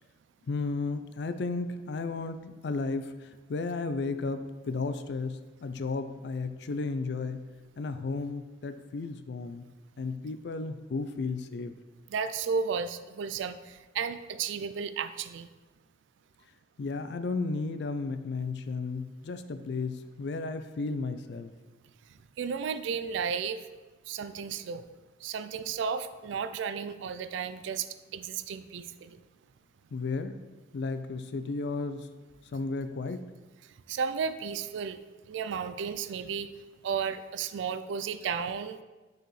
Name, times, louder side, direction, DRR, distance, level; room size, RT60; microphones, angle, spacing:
voice 1, 0.5-2.4 2.6-3.1 3.5-7.4 7.8-9.6 10.0-11.7 16.8-21.5 29.9-30.3 30.7-32.1 32.5-33.2, left 3 dB, 60° left, 10 dB, 0.4 m, -33 dB
voice 2, 12.1-15.5 22.4-23.7 24.1-24.9 25.2-29.2 33.9-35.0 35.3-36.5 36.8-38.8, right 6 dB, 75° right, 12 dB, 0.3 m, -33 dB
6.4 x 4.8 x 3.1 m, 1.2 s
head